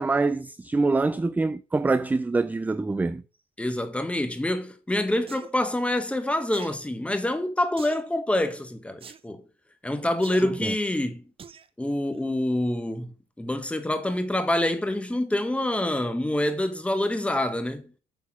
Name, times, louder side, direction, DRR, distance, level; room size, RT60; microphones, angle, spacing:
voice 1, 0.0-3.2 10.4-10.7, right 3 dB, 10° right, 0.3 m, -25 dB
voice 2, 3.6-9.4 9.8-11.3 11.8-17.9, left 1 dB, 5° left, 1.2 m, -26 dB
sound 1, 5.3-5.5 6.5-6.8 7.8-8.1 9.0-9.2 10.2-10.4 11.4-11.7 12.1-12.2, right 6 dB, 35° right, 0.7 m, -44 dB
8.2 x 4.2 x 6.0 m
cardioid pair, 110°, 17 cm